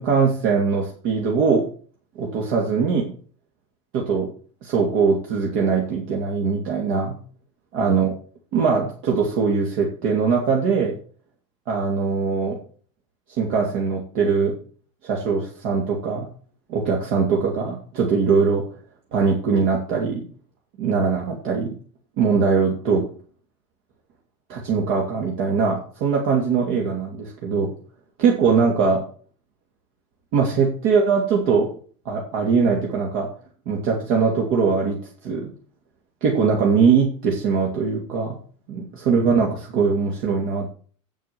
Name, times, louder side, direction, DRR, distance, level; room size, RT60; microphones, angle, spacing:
voice 1, 0.0-1.7 2.2-3.1 3.9-4.3 4.6-7.1 7.7-8.1 8.5-10.9 11.7-12.6 13.3-14.6 15.0-16.3 16.7-18.7 19.1-20.2 20.8-21.7 22.2-23.1 24.5-27.7 28.2-29.1 30.3-31.7 32.0-33.3 33.7-35.5 36.2-38.4 38.7-40.7, right 5 dB, 55° right, -1 dB, 2.8 m, -21 dB
9.1 x 8.3 x 6.1 m, 0.43 s
cardioid pair, 165°, 17 cm